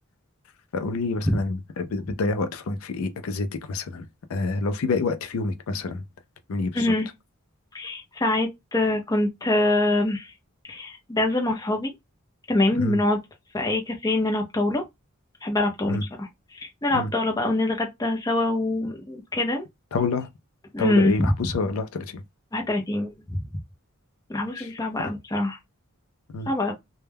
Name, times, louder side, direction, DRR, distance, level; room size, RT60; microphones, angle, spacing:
voice 1, 0.7-6.0 6.5-6.9 12.8-13.0 15.9-16.0 16.9-17.1 19.9-20.3 20.8-22.2 24.6-24.7 26.3-26.5, left 3 dB, 75° left, 0.4 m, -28 dB
voice 2, 6.7-7.1 7.7-10.3 10.7-11.9 12.5-13.2 13.5-14.8 15.4-19.6 20.7-21.1 22.5-23.4 24.3-25.6 26.5-26.7, left 2 dB, 15° left, 0.6 m, -24 dB
2.2 x 2.1 x 3.3 m
head